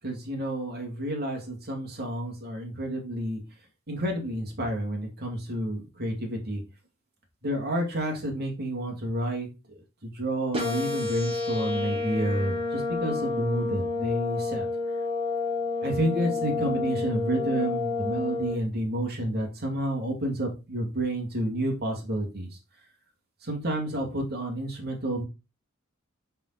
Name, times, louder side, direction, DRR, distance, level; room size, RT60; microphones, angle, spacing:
voice 1, 0.0-3.4 3.9-6.6 7.4-9.5 10.0-14.6 15.8-22.5 23.4-25.2, right 1 dB, 50° right, 2 dB, 2.5 m, -30 dB
sound 1, 10.5-18.5, left 3 dB, 25° right, 2.8 m, -29 dB
5.9 x 5.5 x 4.1 m, 0.28 s
head